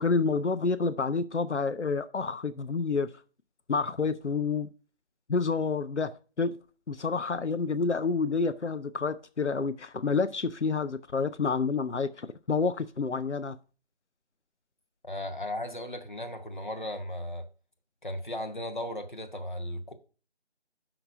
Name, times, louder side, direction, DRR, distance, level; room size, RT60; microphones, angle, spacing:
voice 1, 0.0-3.1 3.7-4.7 5.3-6.1 6.4-6.5 6.9-13.6, left 4 dB, 90° left, 0.7 m, -28 dB
voice 2, 15.0-17.5 18.0-19.9, left 1 dB, 45° left, 1.0 m, -36 dB
5.9 x 5.1 x 6.4 m
figure-of-eight pair, 170°, 34 cm